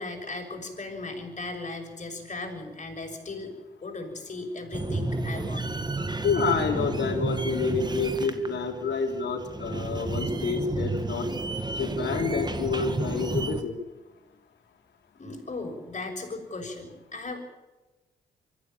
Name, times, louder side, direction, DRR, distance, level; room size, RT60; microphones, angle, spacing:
voice 1, 0.0-5.8 15.2-17.4, left 2 dB, 40° left, 3 dB, 6.4 m, -37 dB
sound 1, 4.7-13.6, right 2 dB, 20° right, 2.0 m, -31 dB
voice 2, 6.2-11.3 11.8-13.7, left 5 dB, 65° left, 4 dB, 3.8 m, -28 dB
24.0 x 14.0 x 9.0 m, 1.1 s
hypercardioid pair, 45°, 19 cm